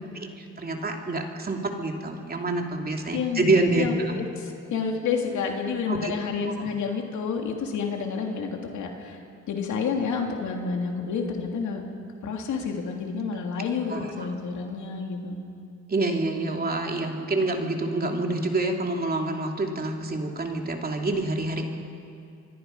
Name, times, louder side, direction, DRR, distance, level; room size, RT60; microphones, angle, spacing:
voice 1, 0.1-4.2 5.9-6.1 6.6-6.7 13.9-14.3 15.9-21.7, right 2 dB, 30° right, 2 dB, 2.8 m, -27 dB
voice 2, 3.1-11.8 12.2-15.4, left 5 dB, 75° left, 2 dB, 3.0 m, -30 dB
26.0 x 23.0 x 5.7 m, 2.5 s
cardioid pair, 90°, 30 cm